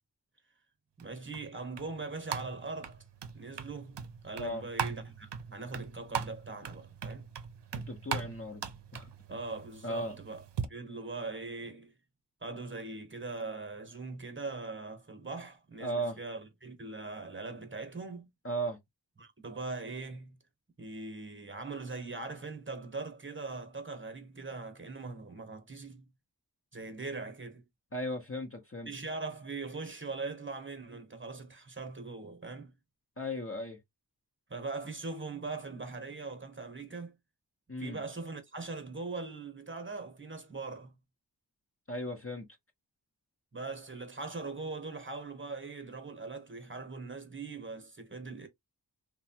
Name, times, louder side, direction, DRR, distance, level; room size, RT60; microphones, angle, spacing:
voice 1, 1.0-3.0 3.3-7.3 9.3-10.4 10.7-11.9 12.4-18.3 19.2-20.4 20.8-26.1 26.7-27.6 28.9-32.7 34.5-37.1 37.8-40.9 43.5-48.5, right 3 dB, 30° right, 0.9 m, -41 dB
sound 1, 1.0-10.7, right 7 dB, 80° right, 0.6 m, -40 dB
voice 2, 7.7-8.7 8.9-9.1 9.8-10.1 15.8-16.2 18.4-18.8 27.9-28.9 33.2-33.8 37.7-38.0 41.9-42.5, equal, 35° left, 0.7 m, -36 dB
3.1 x 2.2 x 2.8 m
wide cardioid pair, 55°, 41 cm